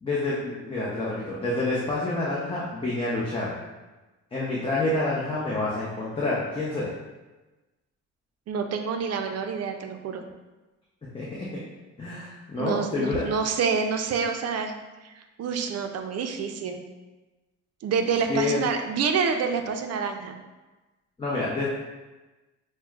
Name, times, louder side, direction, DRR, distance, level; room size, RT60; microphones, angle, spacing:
voice 1, 0.0-3.5 4.3-6.9 11.1-11.6 12.0-13.2 18.3-18.6 21.2-21.7, left 2 dB, 20° left, -7 dB, 0.7 m, -28 dB
voice 2, 8.5-10.2 12.6-14.7 15.0-16.8 17.8-20.4, right 6 dB, 55° right, 6 dB, 0.5 m, -27 dB
6.0 x 2.2 x 2.4 m, 1.2 s
cardioid pair, 90°, 30 cm